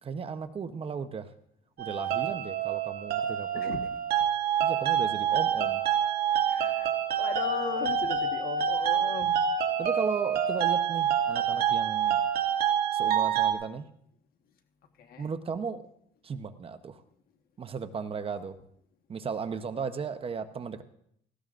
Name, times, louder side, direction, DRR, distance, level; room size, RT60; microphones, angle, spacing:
voice 1, 0.0-1.3 1.8-3.7 4.6-5.8 9.8-12.2 12.9-13.9 15.2-15.8 16.2-17.0 17.6-18.6 19.1-20.8, right 5 dB, 35° right, 9 dB, 0.8 m, -35 dB
sound 1, 1.8-13.5, right 8 dB, 65° right, 1.9 m, -27 dB
voice 2, 6.5-9.4 15.0-15.3, left 6 dB, 60° left, 6 dB, 1.4 m, -37 dB
18.0 x 16.0 x 2.5 m, 0.70 s
cardioid pair, 110°, 17 cm